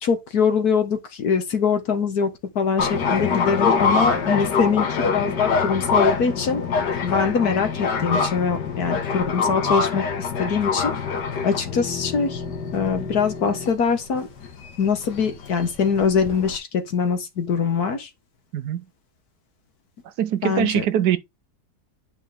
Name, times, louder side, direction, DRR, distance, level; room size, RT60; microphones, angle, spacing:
voice 1, 0.0-6.6 7.0-10.9 11.4-12.4 12.7-14.3 14.8-18.1 20.4-20.9, left 6 dB, 70° left, 2.0 m, -23 dB
sound 1, 2.8-16.6, left 5 dB, 85° left, 1.9 m, -25 dB
voice 2, 18.5-18.8 20.2-21.2, right 10 dB, 75° right, 1.4 m, -22 dB
9.0 x 5.5 x 3.6 m
omnidirectional pair, 1.7 m